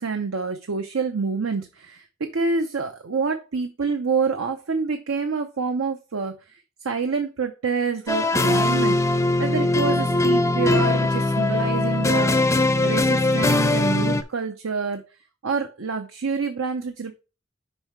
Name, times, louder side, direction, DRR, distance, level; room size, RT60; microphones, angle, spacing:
voice 1, 0.0-9.0 9.4-12.5 12.8-15.1 15.4-17.1, right 4 dB, 85° right, 7 dB, 0.7 m, -27 dB
sound 1, 8.1-14.2, left 2 dB, 15° left, 0.5 m, -21 dB
5.5 x 5.4 x 4.5 m, 0.31 s
head